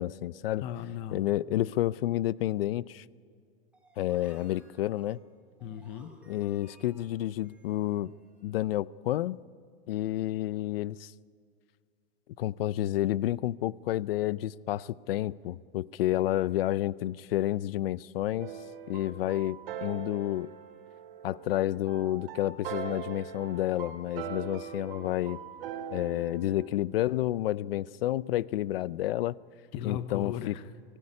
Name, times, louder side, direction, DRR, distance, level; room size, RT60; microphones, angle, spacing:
voice 1, 0.0-0.6 1.1-3.0 4.0-5.2 6.3-8.1 8.4-9.4 9.9-11.1 12.4-18.5 18.9-20.5 21.2-25.4 25.9-29.4 29.8-30.5, left 14 dB, 75° left, 20 dB, 0.6 m, -30 dB
voice 2, 0.6-1.3 5.6-6.1 29.7-30.6, left 10 dB, 20° left, 13 dB, 0.6 m, -37 dB
sound 1, 3.7-8.6, right 1 dB, 5° right, 2.4 m, -60 dB
sound 2, 18.4-26.7, right 8 dB, 65° right, 4.0 m, -41 dB
28.0 x 18.5 x 9.8 m, 2.1 s
supercardioid pair, 180°, 29 cm